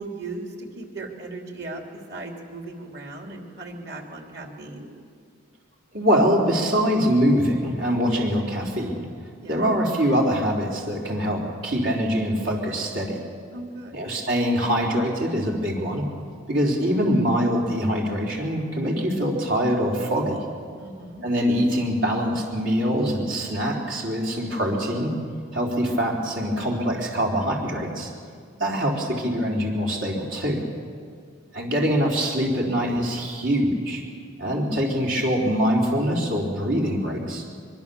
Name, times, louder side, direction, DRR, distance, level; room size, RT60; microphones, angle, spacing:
voice 1, 0.0-1.8 2.1-4.9 9.4-9.7 13.5-13.9 20.8-21.2, right 2 dB, 55° right, 2 dB, 3.3 m, -37 dB
voice 2, 5.9-9.1 9.5-13.2 13.9-16.0 16.5-20.4 21.2-25.1 25.5-28.1 28.6-30.6 31.5-34.0 34.4-37.4, equal, 70° right, -2 dB, 3.8 m, -23 dB
24.0 x 23.5 x 7.0 m, 2.1 s
head